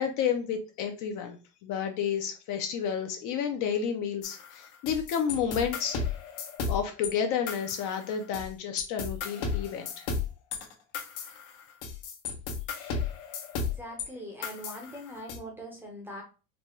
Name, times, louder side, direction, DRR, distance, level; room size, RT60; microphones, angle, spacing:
voice 1, 0.0-1.4 1.6-6.0 6.7-10.1, left 7 dB, 45° left, 5 dB, 0.5 m, -31 dB
sound 1, 4.2-7.1 7.5-8.5 8.8-14.1 14.4-15.4, left 5 dB, 75° left, 1.1 m, -34 dB
voice 2, 13.7-16.2, equal, 5° right, 0 dB, 0.6 m, -42 dB
4.0 x 2.2 x 3.0 m, 0.32 s
cardioid pair, 155°, 44 cm